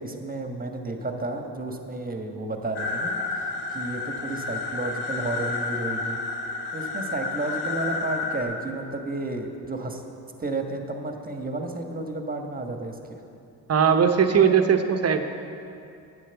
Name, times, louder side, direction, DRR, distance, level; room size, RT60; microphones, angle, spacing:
voice 1, 0.0-3.1 3.7-6.2 6.7-10.0 10.4-13.2, right 2 dB, 25° right, 4 dB, 1.4 m, -32 dB
sound 1, 2.7-8.4, left 3 dB, 80° left, 1.5 m, -30 dB
voice 2, 13.7-15.2, right 7 dB, 40° right, 6 dB, 1.0 m, -19 dB
10.0 x 8.7 x 7.0 m, 2.5 s
cardioid pair, 80°, 38 cm